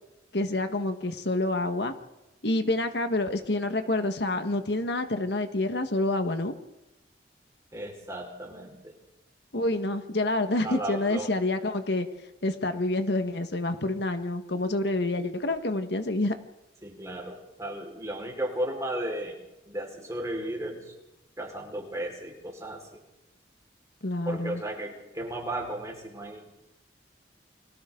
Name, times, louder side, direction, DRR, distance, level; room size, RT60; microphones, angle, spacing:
voice 1, 0.3-1.9 2.4-6.5 9.5-12.1 12.4-16.3 24.0-24.6, left 2 dB, 65° left, 7 dB, 1.6 m, -28 dB
voice 2, 7.7-8.9 10.6-11.3 16.8-20.9 21.4-22.8 24.2-26.6, right 1 dB, 15° right, 0 dB, 5.0 m, -35 dB
29.5 x 25.0 x 4.0 m, 0.97 s
head